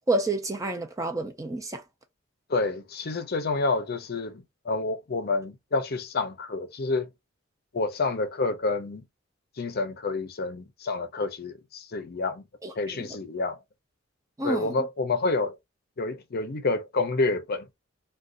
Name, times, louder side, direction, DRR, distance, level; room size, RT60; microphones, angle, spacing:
voice 1, 0.1-1.8 12.6-13.1 14.4-14.9, right 2 dB, 15° right, 0.5 m, -29 dB
voice 2, 2.5-7.1 7.7-9.0 9.6-12.4 12.8-13.6 14.4-15.6 16.0-17.7, left 3 dB, 50° left, 0.6 m, -28 dB
2.5 x 2.3 x 3.7 m
head